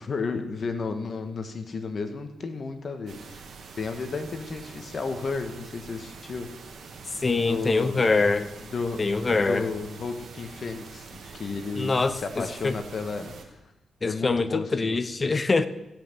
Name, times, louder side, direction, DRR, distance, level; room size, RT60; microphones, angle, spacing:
voice 1, 0.0-3.4 3.7-6.5 7.4-8.1 8.7-9.0 9.3-13.4 14.0-15.0, left 4 dB, 55° left, 1.7 m, -33 dB
sound 1, 3.1-13.4, right 5 dB, 70° right, 1.9 m, -45 dB
voice 2, 7.2-8.5 9.0-9.7 11.8-12.7 14.0-15.7, left 3 dB, 35° left, 0.9 m, -24 dB
16.5 x 6.1 x 7.1 m
cardioid pair, 60°, 0 cm